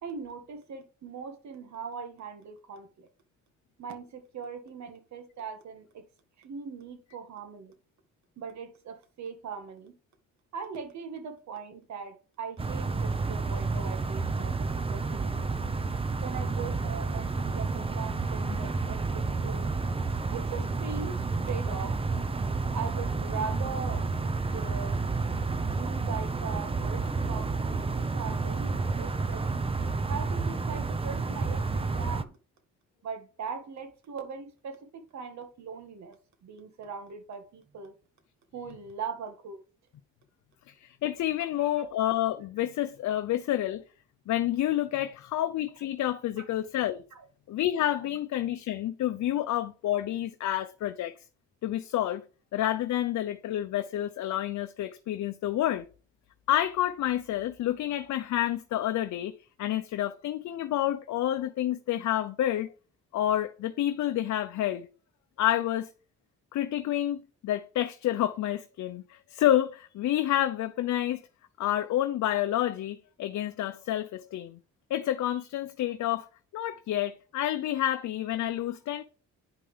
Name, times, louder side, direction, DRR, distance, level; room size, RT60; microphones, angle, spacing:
voice 1, 0.0-3.1 3.8-6.1 6.4-7.7 8.4-9.9 10.5-15.4 16.2-19.7 20.3-21.2 21.4-22.0 22.7-25.0 25.7-29.5 30.1-32.3 33.0-38.0 38.5-39.6 41.6-41.7 47.1-47.3, right 6 dB, 65° right, 1.8 m, -40 dB
sound 1, 12.6-32.2, right 4 dB, 20° right, 0.7 m, -30 dB
voice 2, 40.7-43.8 44.3-47.0 47.5-51.1 51.6-52.2 52.5-55.9 56.5-59.3 59.6-62.7 63.1-64.9 65.4-65.9 66.5-71.2 71.6-74.6 74.9-76.3 76.5-79.0, left 12 dB, 70° left, 0.7 m, -29 dB
9.8 x 5.4 x 3.4 m
cardioid pair, 90°, 30 cm